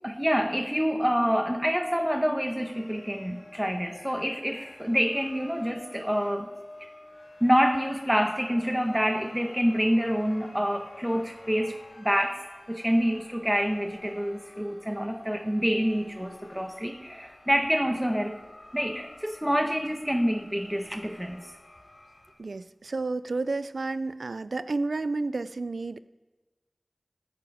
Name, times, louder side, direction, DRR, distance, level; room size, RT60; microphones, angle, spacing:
voice 1, 0.0-6.5 7.4-18.4 18.7-21.4, equal, 5° right, 5 dB, 1.4 m, -27 dB
sound 1, 2.5-22.3, left 2 dB, 70° left, 2.7 m, -51 dB
voice 2, 22.4-26.0, right 3 dB, 90° right, 15 dB, 0.4 m, -31 dB
17.5 x 9.6 x 5.0 m, 1.2 s
wide cardioid pair, 50°, 0 cm